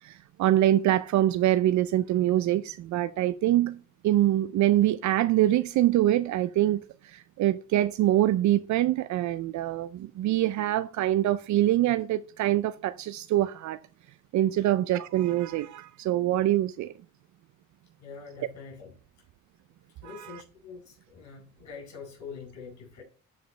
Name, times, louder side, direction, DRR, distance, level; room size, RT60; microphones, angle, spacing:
voice 1, 0.0-13.8 14.3-16.9 20.0-20.4, right 13 dB, 70° right, 0.5 m, -25 dB
voice 2, 18.0-19.0 20.0-23.0, left 5 dB, 65° left, 4.5 m, -44 dB
11.5 x 5.0 x 3.3 m
cardioid pair, 90°, 30 cm